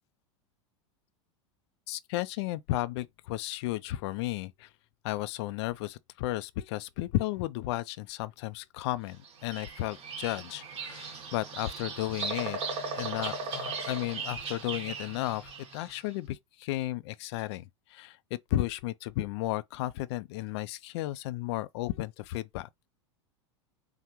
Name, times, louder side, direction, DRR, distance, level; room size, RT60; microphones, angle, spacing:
voice 1, 1.9-4.7 5.0-12.6 13.0-17.6 17.9-18.2 18.5-22.7, left 16 dB, 65° left, 0.4 m, -34 dB
Bird vocalization bird call bird song, 9.2-15.9, right 4 dB, 40° right, 1.3 m, -37 dB
5.8 x 2.1 x 3.0 m
hypercardioid pair, 110°, 15 cm